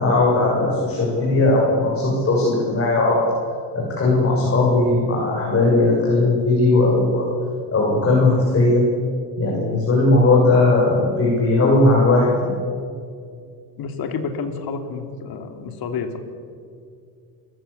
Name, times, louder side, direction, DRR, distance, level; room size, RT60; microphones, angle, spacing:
voice 1, 0.0-3.2 3.7-7.3 7.7-8.8 9.4-12.5, left 2 dB, 30° left, -3 dB, 6.7 m, -18 dB
voice 2, 13.8-16.2, left 5 dB, 55° left, 6 dB, 3.1 m, -29 dB
28.5 x 14.0 x 8.5 m, 2.3 s
cardioid pair, 115°, 44 cm